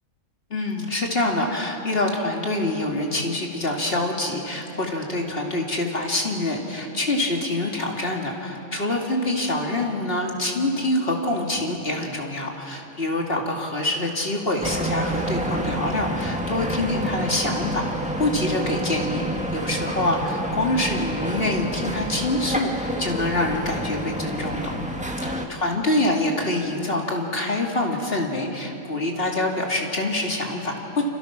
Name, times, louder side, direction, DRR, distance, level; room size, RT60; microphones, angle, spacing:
voice 1, 0.5-17.9 18.2-19.2 19.5-24.7 25.2-31.0, left 2 dB, 50° left, 0 dB, 2.9 m, -25 dB
sound 1, 14.6-25.5, right 1 dB, 5° right, 1.6 m, -28 dB
28.5 x 27.0 x 6.1 m, 3.0 s
omnidirectional pair, 1.3 m